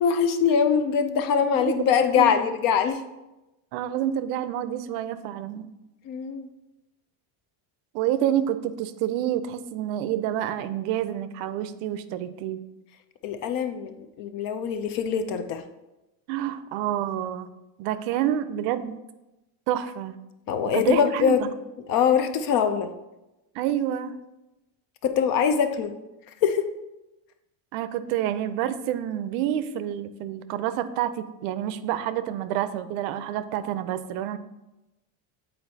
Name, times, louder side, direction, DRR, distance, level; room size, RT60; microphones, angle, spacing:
voice 1, 0.0-3.0 6.1-6.5 13.2-15.6 20.5-21.5 21.9-22.9 25.0-25.9 26.4-26.7, left 7 dB, 45° left, 9 dB, 0.4 m, -23 dB
voice 2, 1.4-1.9 2.1-2.4 3.7-5.7 7.9-12.6 16.3-17.5 17.8-18.9 19.7-20.1 20.7-21.5 23.5-24.2 27.7-34.4, right 11 dB, 70° right, 12 dB, 0.6 m, -28 dB
7.9 x 4.4 x 2.7 m, 0.99 s
cardioid pair, 150°, 48 cm